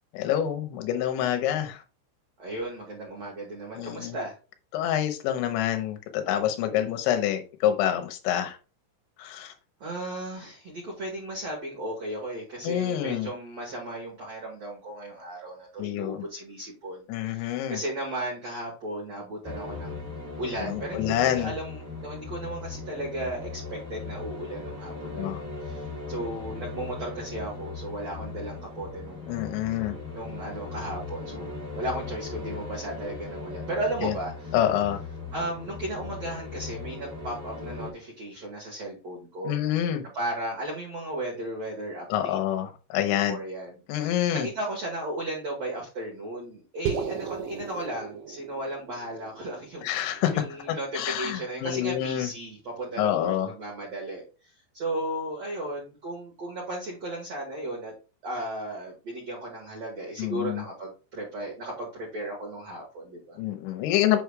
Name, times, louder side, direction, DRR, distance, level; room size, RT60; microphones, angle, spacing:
voice 1, 0.1-1.8 3.8-4.2 4.7-8.6 9.2-9.5 12.6-13.3 15.8-16.2 17.1-17.8 20.7-21.5 25.1-25.4 29.3-30.0 34.0-34.1 34.5-35.0 39.4-40.0 42.1-43.4 43.9-44.5 49.8-52.3 53.0-53.5 60.2-60.6 63.4-64.2, left 11 dB, 75° left, 6 dB, 3.0 m, -27 dB
voice 2, 2.4-4.3 9.8-17.0 17.3-29.3 30.1-34.5 35.3-39.6 40.1-42.4 43.1-43.7 44.0-54.3 54.7-57.9 58.2-63.4, right 1 dB, 70° right, -3 dB, 1.6 m, -35 dB
sound 1, 19.4-37.9, left 4 dB, 15° left, 0.7 m, -38 dB
sound 2, 46.9-51.2, right 7 dB, 90° right, 2.4 m, -36 dB
8.1 x 6.3 x 2.3 m, 0.33 s
omnidirectional pair, 5.8 m